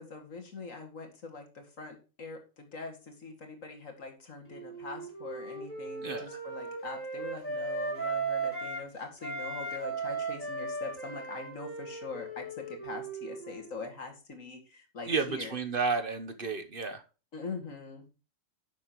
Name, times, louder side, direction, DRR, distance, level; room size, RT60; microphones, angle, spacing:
voice 1, 0.0-15.6 17.3-18.0, left 4 dB, 75° left, 4 dB, 2.6 m, -43 dB
Wind instrument woodwind instrument, 4.5-8.9 9.2-13.7, right 3 dB, 10° left, 3.7 m, -37 dB
voice 2, 15.1-17.0, right 4 dB, 45° right, 9 dB, 1.0 m, -32 dB
11.0 x 7.2 x 3.0 m, 0.33 s
omnidirectional pair, 1.4 m